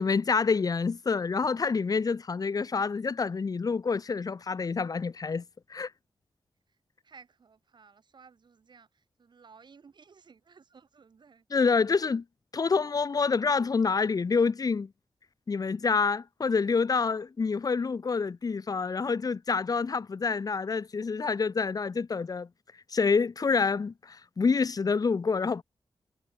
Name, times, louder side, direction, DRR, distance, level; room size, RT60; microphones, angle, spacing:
voice 1, 0.0-5.4 5.7-5.9 11.5-12.2 12.5-14.9 15.5-22.5 22.9-25.6, left 5 dB, 45° left, 1.5 m, -27 dB
voice 2, 7.0-11.4, right 5 dB, 60° right, 7.4 m, -56 dB
wide cardioid pair, 145°, 9 cm